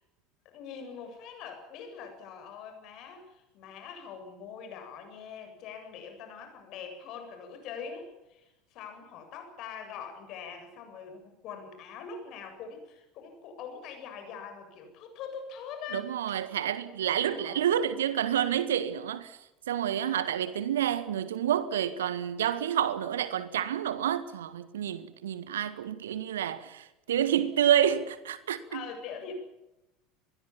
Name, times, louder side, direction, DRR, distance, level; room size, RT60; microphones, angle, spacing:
voice 1, 0.4-16.1 17.0-17.6 28.7-29.3, left 6 dB, 45° left, 7.9 m, -43 dB
voice 2, 15.9-19.3 19.7-28.8, right 10 dB, 65° right, 1.7 m, -29 dB
26.0 x 21.5 x 7.3 m
figure-of-eight pair, 70°, 0 cm